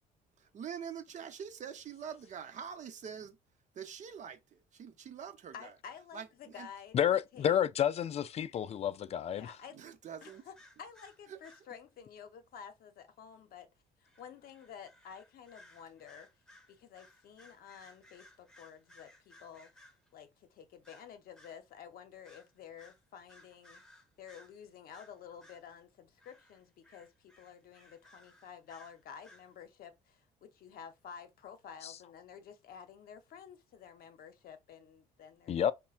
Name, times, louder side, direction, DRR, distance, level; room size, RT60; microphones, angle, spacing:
voice 1, 0.4-3.4 3.7-5.7 6.1-6.3 6.6-6.7 9.7-10.4 11.3-11.4, right 7 dB, 45° right, 0.8 m, -45 dB
voice 2, 5.5-7.5 9.3-9.8 10.2-13.7 14.0-16.3 16.7-19.8 20.1-23.8 24.2-35.6, left 7 dB, 60° left, 0.8 m, -51 dB
voice 3, 6.9-9.5 31.8-31.9 35.5-35.7, left 9 dB, 40° left, 0.4 m, -30 dB
sound 1, 10.2-11.7 14.0-20.1 20.8-21.6 22.2-22.5 22.8-24.6 24.9-25.7 26.2-29.5, left 1 dB, 5° left, 1.2 m, -60 dB
5.3 x 2.2 x 2.4 m
cardioid pair, 110°, 17 cm